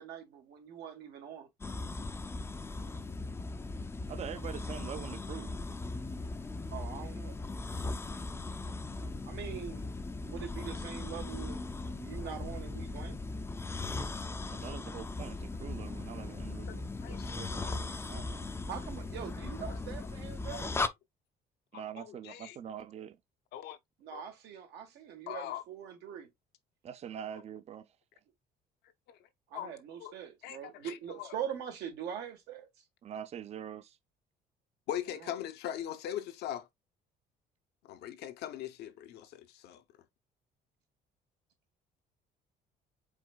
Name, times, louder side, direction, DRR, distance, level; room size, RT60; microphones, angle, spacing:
voice 1, 0.0-1.5 6.7-7.4 9.2-9.8 10.2-13.2 18.7-20.7 24.0-26.3 29.5-32.7 35.2-35.3, right 9 dB, 80° right, 1.4 m, -43 dB
sound 1, 1.6-20.9, left 3 dB, 15° left, 0.4 m, -38 dB
voice 2, 4.1-5.5 8.9-9.1 14.5-18.5 21.7-23.2 26.8-27.9 33.0-34.0, right 9 dB, 40° right, 0.5 m, -44 dB
voice 3, 17.0-17.8 19.6-19.8 20.5-20.8 21.7-22.6 23.5-23.8 24.1-24.2 25.3-25.6 29.1-29.2 29.5-29.7 30.0-30.1 30.4-31.4 34.9-36.7 37.9-39.8, left 11 dB, 75° left, 0.7 m, -41 dB
4.9 x 3.8 x 2.3 m
cardioid pair, 110°, 17 cm